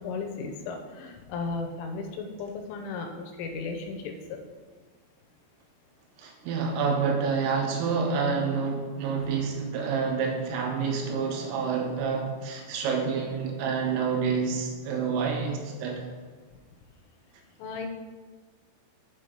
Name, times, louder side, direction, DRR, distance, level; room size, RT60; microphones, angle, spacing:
voice 1, 0.0-4.4 17.6-17.9, left 4 dB, 80° left, 4 dB, 3.3 m, -35 dB
voice 2, 6.2-16.1, right 5 dB, 80° right, 3 dB, 3.6 m, -28 dB
7.6 x 5.9 x 5.1 m, 1.5 s
omnidirectional pair, 5.9 m